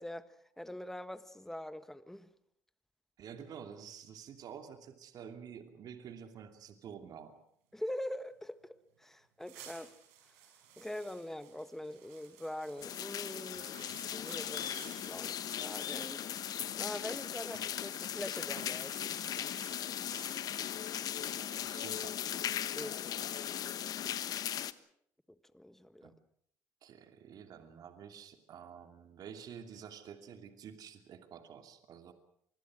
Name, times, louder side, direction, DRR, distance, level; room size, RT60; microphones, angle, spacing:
voice 1, 0.0-2.3 7.7-9.9 10.8-16.2 16.8-19.2 22.7-23.0 24.0-24.1 25.5-26.1, left 1 dB, 5° left, 1.6 m, -43 dB
voice 2, 3.2-7.4 13.5-14.1 21.4-22.2 26.0-26.1 26.8-32.1, right 7 dB, 55° right, 2.7 m, -50 dB
sound 1, 9.0-9.1 9.4-18.0 18.3-23.2, right 8 dB, 90° right, 5.2 m, -56 dB
sound 2, 12.8-24.7, left 10 dB, 55° left, 1.2 m, -38 dB
26.5 x 21.0 x 6.3 m
supercardioid pair, 80°, 8 cm